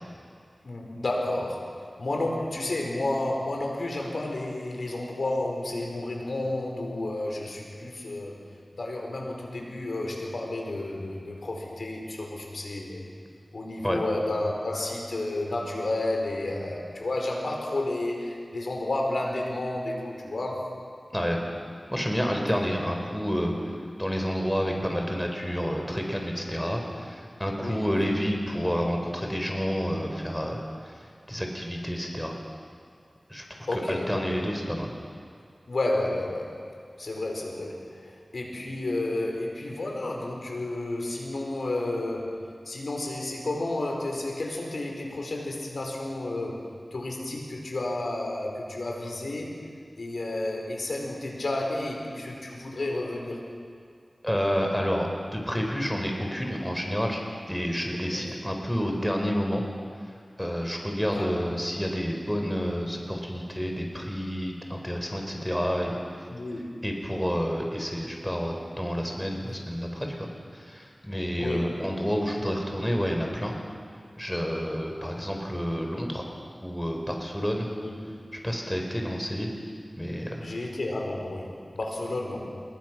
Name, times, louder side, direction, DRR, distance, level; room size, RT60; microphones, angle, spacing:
voice 1, 0.6-13.0 13.5-20.7 27.6-27.9 33.7-34.5 35.7-36.6 37.0-42.4 42.6-46.6 46.9-49.6 50.0-53.4 58.1-58.3 61.1-61.5 66.3-66.7 71.4-71.7 77.8-78.2 80.4-82.6, left 2 dB, 80° left, 1 dB, 4.8 m, -31 dB
voice 2, 21.9-23.5 24.0-30.9 31.3-32.3 33.3-33.4 33.7-34.9 54.2-57.2 57.5-59.6 60.4-66.0 66.8-70.3 70.5-73.5 74.2-76.3 76.6-77.7 78.4-79.5 80.0-80.5, equal, 5° left, 1 dB, 4.3 m, -29 dB
27.5 x 21.5 x 6.1 m, 2.2 s
wide cardioid pair, 45°, 0 cm